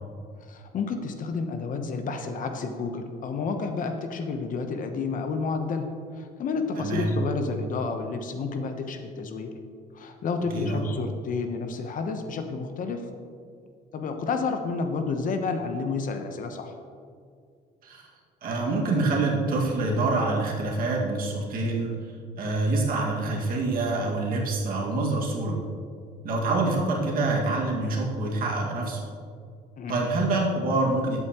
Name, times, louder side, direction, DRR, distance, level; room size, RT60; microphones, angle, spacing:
voice 1, 0.5-5.9 6.2-9.5 9.9-13.0 13.9-16.7 29.8-30.0, left 4 dB, 50° left, 6 dB, 1.0 m, -30 dB
voice 2, 6.8-7.1 10.5-10.8 17.8-18.1 18.4-22.0 22.4-25.6 26.2-29.0 29.9-31.2, right 2 dB, 60° right, -1 dB, 2.0 m, -26 dB
12.5 x 8.2 x 3.0 m, 2.2 s
cardioid pair, 110°, 17 cm